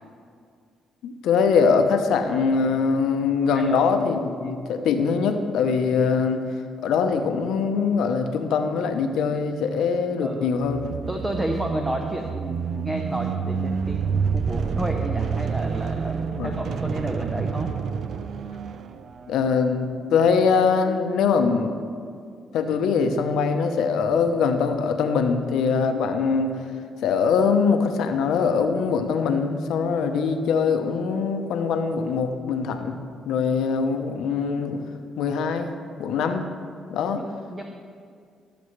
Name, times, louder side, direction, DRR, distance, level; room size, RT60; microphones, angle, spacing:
voice 1, 1.0-6.5 6.8-10.9 16.3-16.5 19.3-21.7 22.5-26.6 27.0-33.0 33.2-34.9 35.2-35.7 36.0-36.5 36.9-37.2, left 5 dB, 85° left, 6 dB, 0.8 m, -22 dB
voice 2, 10.2-10.5 11.1-17.7 37.0-37.6, right 1 dB, 15° right, 2 dB, 0.8 m, -31 dB
sound 1, 10.6-19.4, right 6 dB, 65° right, 0.4 m, -28 dB
16.5 x 7.0 x 3.2 m, 2.2 s
cardioid pair, 90°, 0 cm